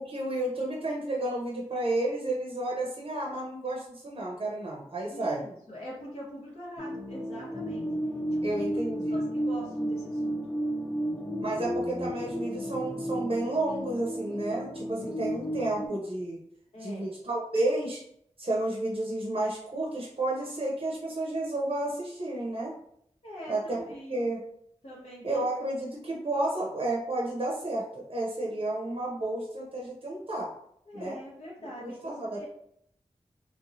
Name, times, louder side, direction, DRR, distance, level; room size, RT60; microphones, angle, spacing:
voice 1, 0.0-5.4 8.4-9.2 11.4-16.4 16.8-18.0 18.4-22.7 23.5-24.4 25.2-30.5 30.9-31.2 31.8-32.5, right 2 dB, 50° right, -3 dB, 0.7 m, -31 dB
voice 2, 5.1-7.8 8.3-8.6 9.1-10.4 16.7-17.1 23.2-24.2 24.8-25.5 28.4-28.7 30.9-32.5, equal, 65° left, -8 dB, 1.0 m, -43 dB
sound 1, 6.8-15.9, equal, 15° left, 0.4 m, -33 dB
3.0 x 2.1 x 2.6 m, 0.70 s
cardioid pair, 45°, 12 cm